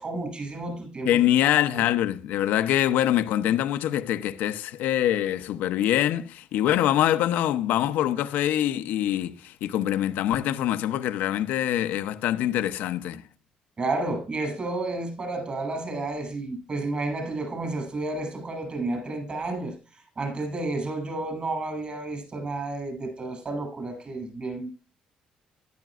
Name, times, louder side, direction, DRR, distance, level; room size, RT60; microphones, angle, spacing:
voice 1, 0.0-1.2 1.7-1.8 13.8-19.7 20.2-24.7, right 2 dB, 40° right, 6.5 m, -31 dB
voice 2, 1.1-13.2, left 12 dB, 80° left, 0.7 m, -24 dB
13.5 x 11.5 x 2.5 m
supercardioid pair, 75°, 3 cm